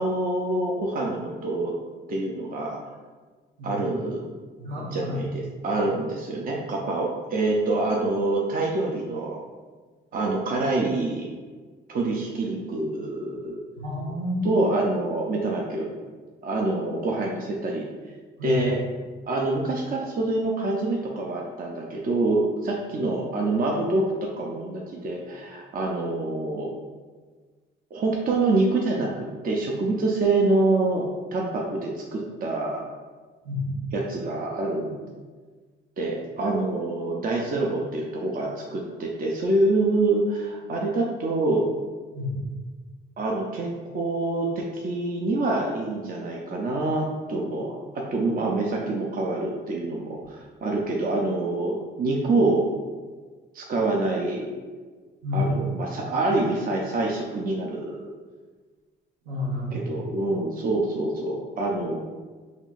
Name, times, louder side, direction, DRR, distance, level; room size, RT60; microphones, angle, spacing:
voice 1, 0.0-1.7 2.1-2.8 3.6-4.3 4.8-9.4 10.1-11.3 11.9-13.6 14.4-15.9 16.4-17.9 18.4-18.8 19.3-26.7 27.9-32.8 33.9-35.0 36.0-41.7 43.2-52.7 53.5-54.5 55.3-58.1 59.7-62.0, right 2 dB, 45° right, -2 dB, 0.6 m, -26 dB
voice 2, 4.6-5.2 13.8-14.5 18.4-18.6 33.4-33.7 42.1-42.4 55.2-55.5 59.2-59.9, left 2 dB, 85° right, -4 dB, 1.3 m, -30 dB
4.4 x 3.0 x 2.5 m, 1.4 s
cardioid pair, 90°, 20 cm